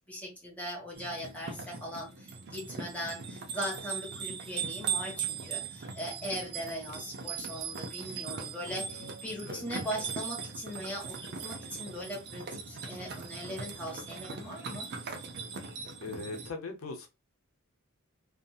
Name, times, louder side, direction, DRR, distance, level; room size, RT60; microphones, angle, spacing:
voice 1, 0.1-14.9, equal, 5° left, 1.3 m, -40 dB
sound 1, 0.9-16.5, right 6 dB, 55° right, 0.5 m, -39 dB
voice 2, 8.7-9.1 9.5-9.6 16.0-17.1, left 3 dB, 85° left, 0.7 m, -40 dB
2.7 x 2.5 x 2.3 m
head